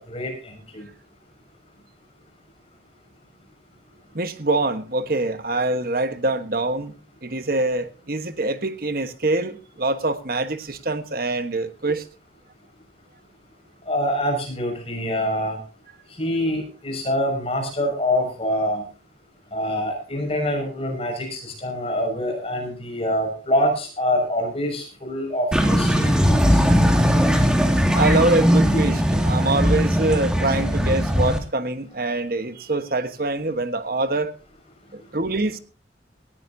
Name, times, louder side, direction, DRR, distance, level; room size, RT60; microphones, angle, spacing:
voice 1, 0.1-0.9 13.9-15.6 16.2-18.8 19.5-26.6, equal, 35° left, 3 dB, 6.0 m, -25 dB
voice 2, 4.1-6.9 7.2-12.1 27.9-34.3 34.9-35.6, right 2 dB, 55° right, 10 dB, 1.3 m, -24 dB
sound 1, 25.5-31.4, equal, 5° right, 2.2 m, -19 dB
19.0 x 15.0 x 2.8 m, 0.34 s
head